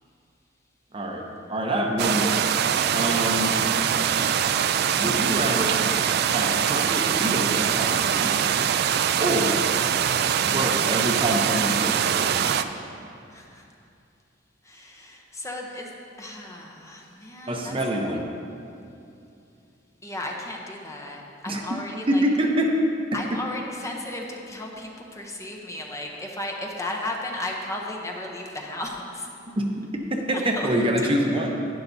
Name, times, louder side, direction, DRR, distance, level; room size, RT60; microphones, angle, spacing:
voice 1, 0.9-2.4 2.9-3.5 5.0-5.8 6.3-8.5 9.2-9.6 10.4-12.6 17.5-18.2 21.5-21.6 22.1-22.7 23.3-23.4 29.5-29.7 30.1-31.6, right 1 dB, 30° right, 1 dB, 0.8 m, -26 dB
sound 1, 2.0-12.6, right 8 dB, 60° right, 0.3 m, -23 dB
voice 2, 2.8-3.1 13.3-13.7 14.6-17.7 20.0-22.2 23.1-29.3 30.3-30.7 31.0-31.1, left 1 dB, 15° left, 0 dB, 0.8 m, -35 dB
11.0 x 10.0 x 2.7 m, 2.6 s
head